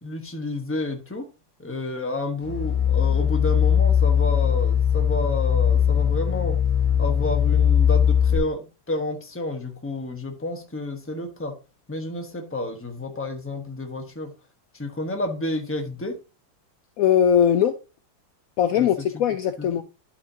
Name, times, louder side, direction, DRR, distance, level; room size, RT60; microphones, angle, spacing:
voice 1, 0.0-1.2 1.6-6.6 7.0-11.5 11.9-14.3 14.7-16.1 18.7-18.9 19.1-19.2 19.6-19.8, left 2 dB, 10° left, 0.8 m, -30 dB
sound 1, 2.4-8.4, left 8 dB, 50° left, 2.9 m, -20 dB
voice 2, 17.0-17.8 18.6-19.8, left 9 dB, 85° left, 0.7 m, -20 dB
11.5 x 5.5 x 2.7 m
omnidirectional pair, 2.0 m